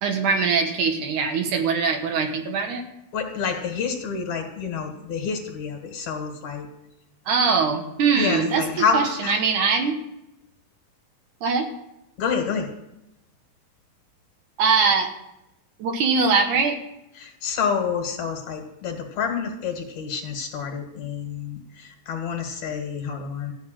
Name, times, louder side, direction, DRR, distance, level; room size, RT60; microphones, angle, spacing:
voice 1, 0.0-2.8 7.3-8.7 8.9-10.0 11.4-11.7 14.6-15.1 15.8-16.8, right 5 dB, 70° right, 4 dB, 2.5 m, -22 dB
voice 2, 3.1-6.7 8.1-9.3 12.2-12.7 17.2-23.5, left 6 dB, 60° left, 4 dB, 2.8 m, -28 dB
14.5 x 6.0 x 9.0 m, 0.85 s
omnidirectional pair, 3.9 m